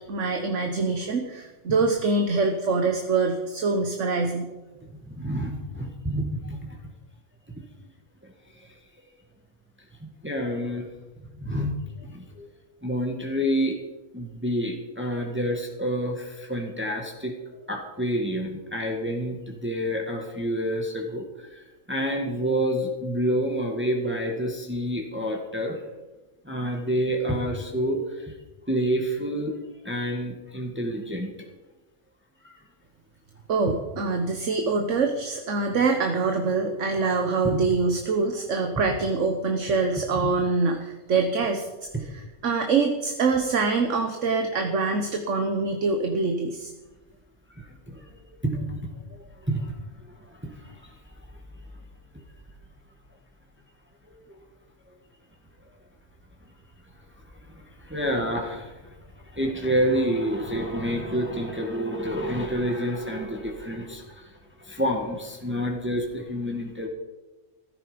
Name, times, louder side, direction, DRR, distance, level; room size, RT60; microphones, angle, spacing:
voice 1, 0.1-4.5 33.5-41.7 42.1-46.7, right 4 dB, 65° right, 5 dB, 1.5 m, -24 dB
voice 2, 5.2-6.6 8.6-8.7 10.0-10.9 11.4-12.5 12.8-13.8 14.1-17.3 17.7-21.2 21.5-21.6 21.9-25.8 26.5-28.3 28.7-29.6 29.8-31.3 32.4-32.5 37.4-37.6 40.2-40.3 41.9-42.0 47.6-48.0 48.4-49.7 50.4-50.9 57.8-58.9 59.3-64.3 64.6-66.9, equal, 10° right, 1 dB, 1.8 m, -28 dB
15.5 x 13.5 x 5.1 m, 1.1 s
omnidirectional pair, 1.4 m